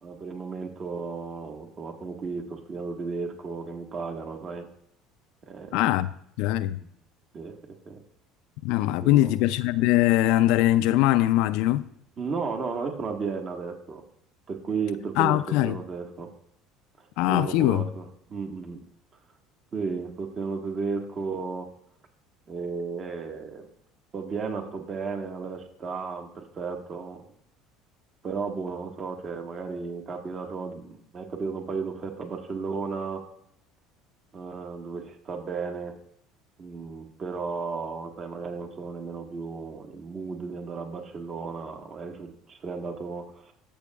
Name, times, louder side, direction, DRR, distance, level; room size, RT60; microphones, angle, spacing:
voice 1, 0.0-4.7 5.5-5.8 7.3-7.5 7.9-8.0 8.9-9.3 12.2-14.0 14.5-16.3 17.3-18.8 19.7-21.7 22.5-23.7 24.1-27.2 28.2-33.2 34.3-35.9 36.6-43.5, right 4 dB, 40° right, 1.4 m, -34 dB
voice 2, 5.7-6.1 6.4-6.8 8.6-11.9 15.2-15.8 17.2-17.9, left 15 dB, 70° left, 0.3 m, -22 dB
14.0 x 6.3 x 2.3 m
hypercardioid pair, 70°, 0 cm